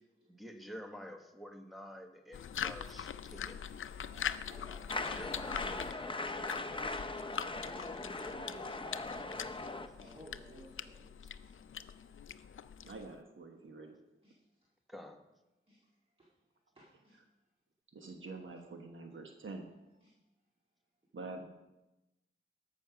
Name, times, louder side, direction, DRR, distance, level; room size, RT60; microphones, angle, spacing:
voice 1, 0.3-3.6 5.0-6.6 14.9-15.2, equal, ahead, 5 dB, 1.1 m, -49 dB
sound 1, 2.3-13.2, left 8 dB, 70° left, 0.4 m, -43 dB
voice 2, 4.1-4.9 7.2-7.4 7.9-9.1 9.9-11.5 12.8-12.9 14.2-14.4 15.7-15.8 16.2-16.3 16.8-17.2 20.0-20.1, right 1 dB, 25° right, -4 dB, 2.0 m, -56 dB
sound 2, 4.9-9.9, left 3 dB, 25° left, 0.6 m, -39 dB
voice 3, 12.8-14.0 17.9-19.7 21.1-21.4, right 3 dB, 70° right, 3 dB, 1.2 m, -46 dB
13.0 x 5.6 x 5.9 m, 0.99 s
wide cardioid pair, 80°, 21 cm